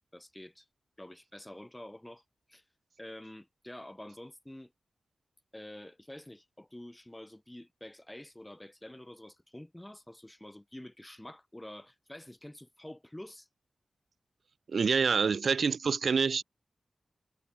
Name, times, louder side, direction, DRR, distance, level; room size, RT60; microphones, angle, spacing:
voice 1, 0.1-0.7 1.0-2.2 2.5-2.6 3.0-4.7 5.5-13.5, left 1 dB, 15° left, 5.8 m, -48 dB
voice 2, 14.7-16.4, right 5 dB, 75° right, 1.1 m, -27 dB
cardioid pair, 45°, 0 cm